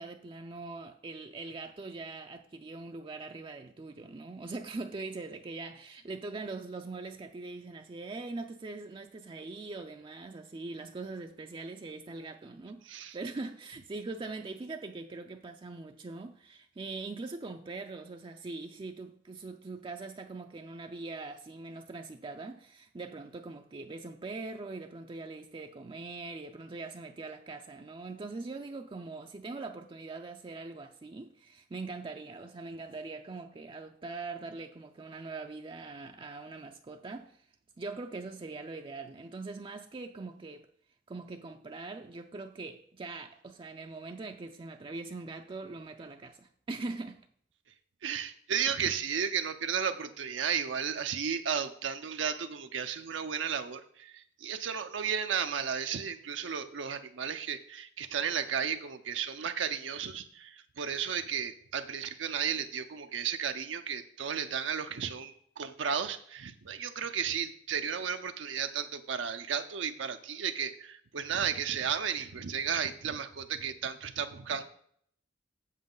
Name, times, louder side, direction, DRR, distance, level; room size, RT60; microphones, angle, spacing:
voice 1, 0.0-37.5 37.8-40.7 41.1-47.3, right 3 dB, 30° right, 0.4 m, -42 dB
voice 2, 48.0-74.6, right 7 dB, 80° right, 0.6 m, -34 dB
7.9 x 7.4 x 3.8 m
head